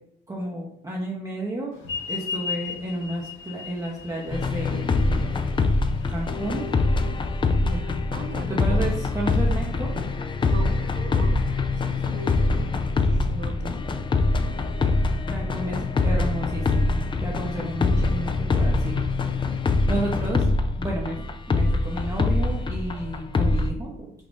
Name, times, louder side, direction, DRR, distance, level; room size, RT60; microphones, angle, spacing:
voice 1, 0.3-1.7 2.1-5.3 6.1-6.6 8.6-10.1 15.3-19.5 19.9-24.1, right 1 dB, 15° right, -3 dB, 0.7 m, -32 dB
sound 1, 1.8-6.8, left 5 dB, 80° left, 1.1 m, -35 dB
sound 2, 4.3-23.7, left 3 dB, 25° left, 0.3 m, -24 dB
voice 2, 7.6-8.9 10.5-11.5 11.8-13.8, right 3 dB, 65° right, 8 dB, 0.5 m, -39 dB
3.7 x 2.3 x 3.6 m, 0.75 s
cardioid pair, 90°, 20 cm